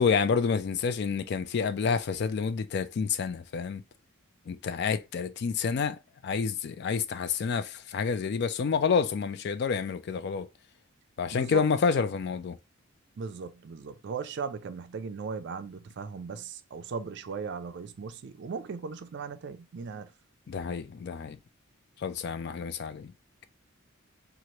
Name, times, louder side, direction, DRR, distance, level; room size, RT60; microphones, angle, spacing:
voice 1, 0.0-3.8 4.5-10.5 11.2-12.6 20.5-21.4 22.0-23.1, left 5 dB, 50° left, 0.3 m, -29 dB
voice 2, 11.3-11.6 13.2-20.1, right 5 dB, 55° right, 0.4 m, -38 dB
3.0 x 2.5 x 2.8 m
head